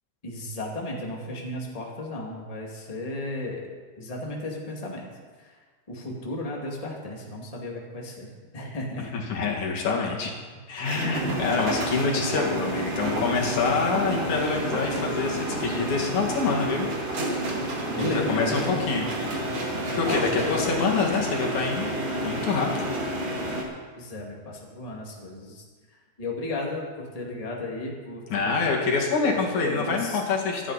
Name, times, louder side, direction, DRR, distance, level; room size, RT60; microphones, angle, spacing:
voice 1, 0.2-3.7 4.0-5.1 5.4-5.6 5.9-8.3 8.5-9.1 11.2-11.4 12.1-12.3 17.9-18.8 20.0-20.7 24.0-25.6 26.2-28.8 29.2-29.3 29.6-30.2, left 2 dB, 15° left, -2 dB, 2.0 m, -34 dB
voice 2, 9.1-10.3 10.7-16.9 18.0-19.1 19.9-21.9 22.2-22.7 28.3-30.7, left 4 dB, 75° left, -1 dB, 3.5 m, -26 dB
sound 1, 10.8-23.6, right 1 dB, 55° right, 3.4 m, -29 dB
25.0 x 9.8 x 4.2 m, 1.4 s
omnidirectional pair, 3.4 m